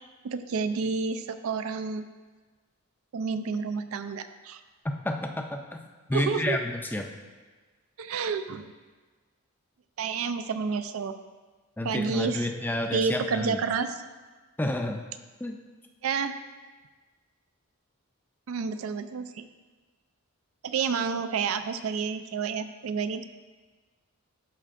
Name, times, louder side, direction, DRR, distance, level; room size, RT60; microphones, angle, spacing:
voice 1, 0.2-2.1 3.1-4.6 6.1-6.6 8.0-8.7 10.0-11.1 11.8-12.5 12.9-14.0 16.0-16.4 18.5-19.4 20.6-23.3, right 5 dB, 70° right, 10 dB, 0.4 m, -30 dB
voice 2, 4.8-5.8 6.1-7.1 11.8-13.6 14.6-15.0 15.4-15.6, left 1 dB, 10° left, 4 dB, 0.4 m, -30 dB
12.0 x 4.3 x 2.5 m, 1.3 s
head